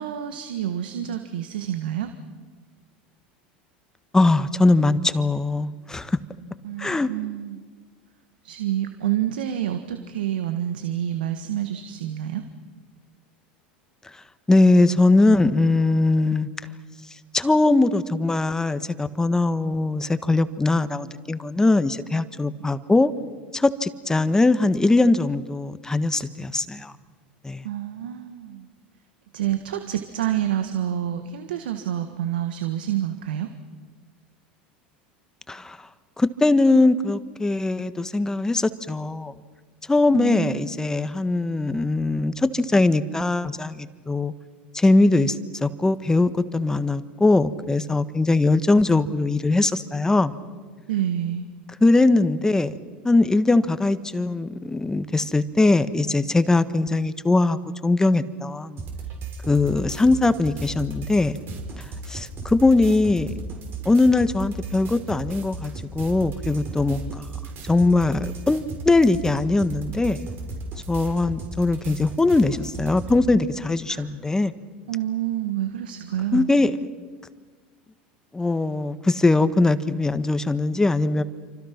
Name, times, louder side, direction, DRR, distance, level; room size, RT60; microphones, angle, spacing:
voice 1, 0.0-2.1 6.6-7.6 8.4-12.4 27.6-28.7 29.3-33.5 40.1-40.7 50.9-51.4 73.9-74.1 74.9-76.5, right 11 dB, 80° right, 8 dB, 1.6 m, -28 dB
voice 2, 4.1-6.2 6.8-7.1 14.5-16.5 17.3-23.1 23.5-26.9 27.4-27.6 35.5-35.8 36.2-39.3 39.9-44.3 44.7-50.3 51.8-52.7 53.0-58.8 59.5-61.4 61.8-63.3 63.8-67.3 67.6-70.3 70.9-74.5 76.3-76.7 78.3-81.2, left 2 dB, 10° left, 12 dB, 1.5 m, -21 dB
sound 1, 58.8-73.2, right 3 dB, 45° right, 5.4 m, -35 dB
28.5 x 25.5 x 6.0 m, 1.5 s
hypercardioid pair, 90°, 5 cm